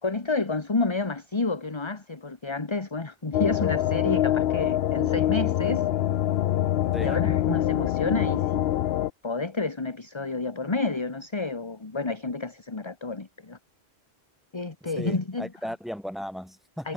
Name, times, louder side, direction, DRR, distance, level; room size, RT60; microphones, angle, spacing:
voice 1, 0.0-5.9 7.0-8.6 9.2-13.6 14.5-15.5 16.8-16.9, left 3 dB, 25° left, 1.4 m, -30 dB
sound 1, 3.3-9.1, left 12 dB, 70° left, 0.8 m, -25 dB
voice 2, 14.8-16.9, equal, ahead, 4.3 m, -36 dB
omnidirectional pair, 1.1 m